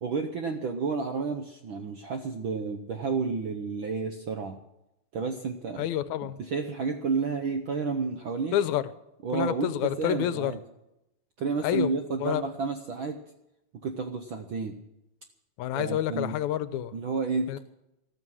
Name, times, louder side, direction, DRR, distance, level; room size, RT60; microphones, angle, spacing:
voice 1, 0.0-4.6 5.1-5.9 6.4-8.6 9.2-10.6 11.4-13.2 13.8-14.8 15.7-16.3 16.9-17.6, right 4 dB, 70° right, 1.2 m, -31 dB
voice 2, 5.8-6.4 8.5-8.8 9.3-10.5 11.6-11.9 12.2-12.4 15.6-16.9 17.5-17.6, left 11 dB, 80° left, 2.0 m, -28 dB
14.5 x 13.5 x 6.2 m
omnidirectional pair, 3.4 m